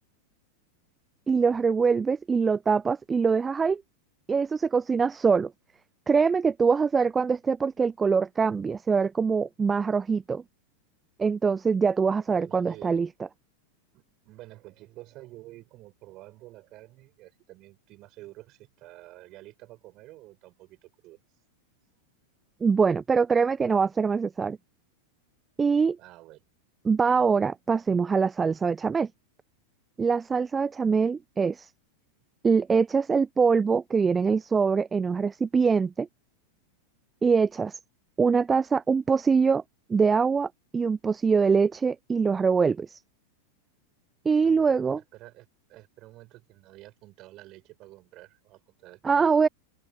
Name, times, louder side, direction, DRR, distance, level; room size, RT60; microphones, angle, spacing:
voice 1, 1.3-3.8 4.3-5.5 6.1-10.4 11.2-13.1 22.6-24.6 25.6-26.0 26.8-29.1 30.0-31.7 32.4-36.1 37.2-37.8 38.2-39.6 39.9-43.0 44.3-45.0 49.0-49.5, right 5 dB, 15° right, 0.3 m, -23 dB
voice 2, 12.3-13.1 13.9-21.2 26.0-26.4 44.4-49.2, right 18 dB, 40° right, 8.0 m, -49 dB
figure-of-eight pair, 90°, 0 cm